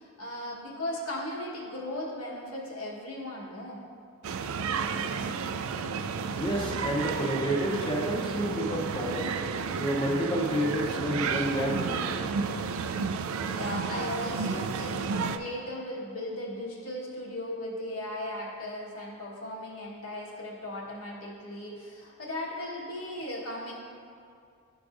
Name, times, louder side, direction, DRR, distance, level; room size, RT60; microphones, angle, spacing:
voice 1, 0.0-3.8 13.5-23.7, left 1 dB, 90° left, -4 dB, 1.3 m, -37 dB
sound 1, 4.2-15.4, right 5 dB, 70° right, 0.3 m, -32 dB
voice 2, 6.3-9.3 9.8-12.2, equal, 20° left, -3 dB, 0.7 m, -29 dB
11.5 x 4.7 x 2.5 m, 2.4 s
head